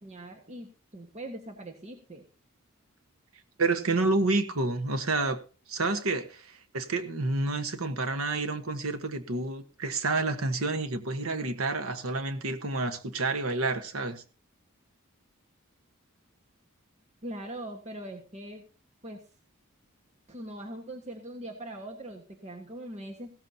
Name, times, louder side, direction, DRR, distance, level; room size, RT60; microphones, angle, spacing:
voice 1, 0.0-2.3 17.2-18.6 19.0-19.2 20.3-23.3, right 1 dB, 35° right, 1.5 m, -41 dB
voice 2, 3.6-5.4 5.7-6.4 6.7-14.2, right 3 dB, 85° right, 1.3 m, -29 dB
16.0 x 13.5 x 2.8 m
head